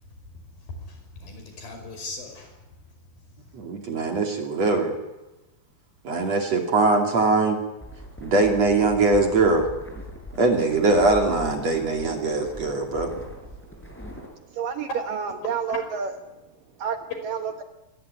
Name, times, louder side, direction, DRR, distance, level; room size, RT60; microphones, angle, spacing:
voice 1, 0.6-2.7 15.7-15.8, left 3 dB, 60° left, 6 dB, 6.9 m, -38 dB
voice 2, 3.5-5.0 6.0-7.6 8.2-9.7 10.3-13.1, right 3 dB, 45° right, 3 dB, 3.4 m, -21 dB
sound 1, 7.8-14.3, equal, 5° left, 6.0 m, -41 dB
voice 3, 14.5-16.1 16.8-17.0 17.2-17.6, right 7 dB, 65° right, 7 dB, 2.6 m, -29 dB
25.5 x 20.0 x 10.0 m, 1.0 s
omnidirectional pair, 4.8 m